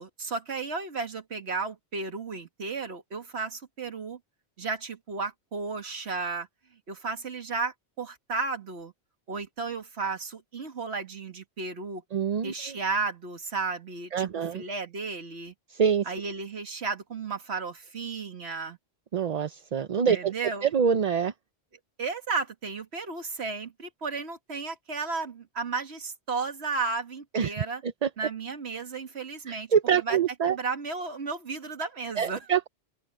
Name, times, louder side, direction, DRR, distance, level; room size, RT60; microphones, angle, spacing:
voice 1, 0.0-4.2 4.6-6.5 6.9-8.9 9.3-12.0 12.4-15.5 16.1-18.8 20.1-20.7 22.0-27.8 28.2-29.7 30.0-30.2 30.5-32.5, right 4 dB, 75° right, 2.0 m, -33 dB
voice 2, 12.1-12.8 14.1-14.6 15.7-16.1 19.1-20.3 20.6-21.3 27.3-27.6 27.8-28.1 29.5-30.6 32.2-32.7, right 7 dB, 45° right, 0.6 m, -25 dB
open air
omnidirectional pair, 1.1 m